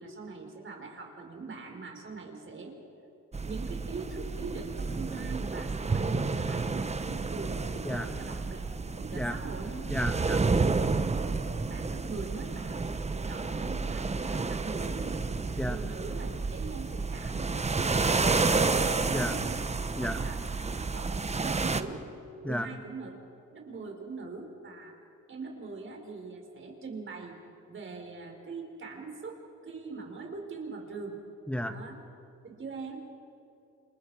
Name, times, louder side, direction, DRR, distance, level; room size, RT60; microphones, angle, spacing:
voice 1, 0.0-2.8 3.4-9.8 11.1-12.8 13.1-15.3 15.7-19.6 20.0-20.4 20.8-22.1 22.4-23.2 23.5-25.0 25.3-27.4 27.7-31.2 31.6-32.0 32.4-33.0, right 4 dB, 40° right, 2 dB, 4.8 m, -42 dB
sound 1, 3.3-21.8, right 4 dB, 20° right, 1.1 m, -30 dB
voice 2, 9.9-10.4 15.6-15.8 19.1-19.3 20.0-20.2 22.4-22.7 31.5-31.7, equal, 5° left, 7 dB, 1.7 m, -32 dB
30.0 x 27.0 x 4.9 m, 2.7 s
cardioid pair, 90°, 30 cm